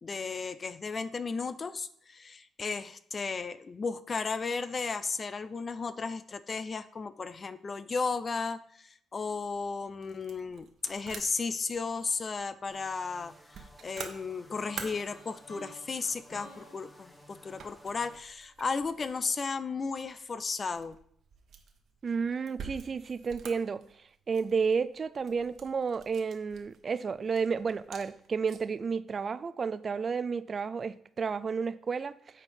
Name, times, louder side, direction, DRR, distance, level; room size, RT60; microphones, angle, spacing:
voice 1, 0.0-21.0, left 4 dB, 35° left, 14 dB, 0.5 m, -34 dB
sound 1, 9.3-28.8, right 6 dB, 65° right, 1.2 m, -50 dB
sound 2, 12.7-18.2, left 1 dB, 10° left, 1.2 m, -56 dB
sound 3, 14.5-18.5, left 1 dB, 85° left, 3.7 m, -53 dB
voice 2, 22.0-32.4, right 5 dB, 40° right, 15 dB, 0.4 m, -32 dB
8.1 x 4.5 x 5.3 m, 0.65 s
cardioid pair, 90°, 0 cm